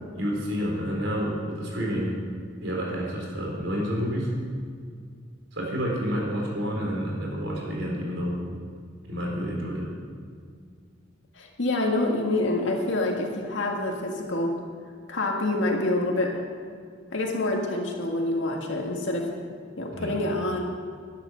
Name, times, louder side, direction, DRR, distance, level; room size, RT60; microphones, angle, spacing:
voice 1, 0.2-2.2 2.6-4.3 5.5-8.4 9.0-9.9 19.9-20.2, equal, 90° right, -2 dB, 4.0 m, -29 dB
voice 2, 11.4-14.5 15.1-16.3 17.1-19.2 19.8-20.6, left 2 dB, 80° left, 0 dB, 1.9 m, -26 dB
11.5 x 11.0 x 6.4 m, 2.1 s
head